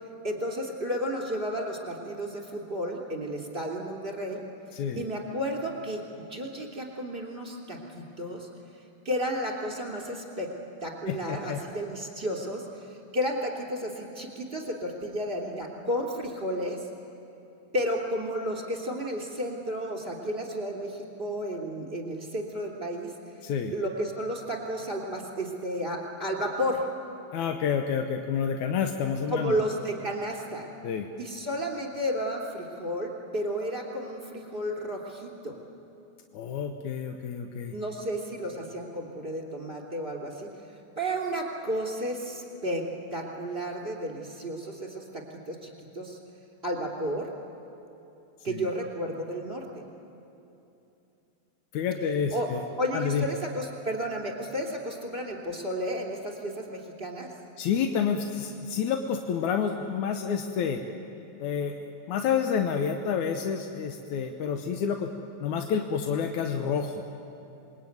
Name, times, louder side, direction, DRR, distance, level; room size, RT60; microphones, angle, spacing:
voice 1, 0.2-4.4 5.0-6.0 6.3-8.5 9.0-10.5 10.8-16.9 17.7-23.1 23.7-26.8 29.3-30.7 31.2-35.5 37.7-40.5 41.0-46.2 46.6-47.3 48.4-49.8 52.3-52.5 52.8-57.3, equal, 15° right, 2 dB, 2.9 m, -32 dB
voice 2, 4.7-5.0 11.1-11.6 23.4-23.7 27.3-29.6 30.8-31.1 36.3-37.8 48.4-48.7 51.7-52.6 52.9-53.3 57.6-60.8 61.4-61.8 62.1-65.1 65.4-67.0, left 7 dB, 70° left, 5 dB, 2.1 m, -29 dB
27.5 x 22.0 x 9.5 m, 2.9 s
omnidirectional pair, 4.3 m